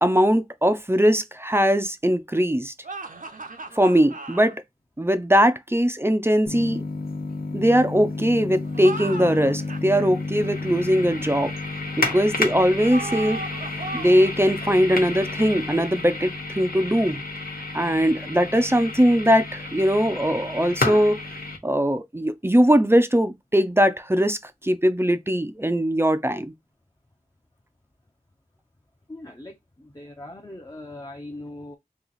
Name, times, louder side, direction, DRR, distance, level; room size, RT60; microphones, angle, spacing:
voice 1, 0.0-2.7 3.7-4.6 5.0-6.8 7.5-11.5 12.0-13.4 13.9-17.2 17.7-21.2 21.6-26.5, equal, 15° right, 0.5 m, -20 dB
sound 1, 2.8-4.5 8.7-10.1 12.9-14.4, right 3 dB, 65° right, 0.7 m, -36 dB
sound 2, 6.5-21.6, left 3 dB, 90° left, 1.0 m, -31 dB
voice 2, 29.1-31.8, left 1 dB, 25° left, 0.7 m, -40 dB
3.1 x 2.9 x 3.9 m
wide cardioid pair, 50°, 15 cm